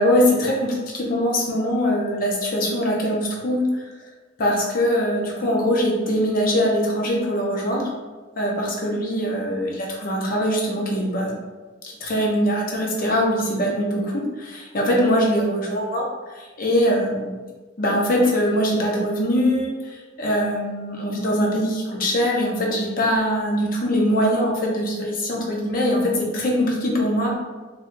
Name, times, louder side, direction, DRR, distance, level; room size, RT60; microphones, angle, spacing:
voice 1, 0.0-3.7 4.4-7.9 8.4-11.3 12.0-16.1 16.4-17.4 17.8-27.3, equal, 50° left, -2 dB, 0.7 m, -22 dB
2.9 x 2.3 x 3.6 m, 1.3 s
head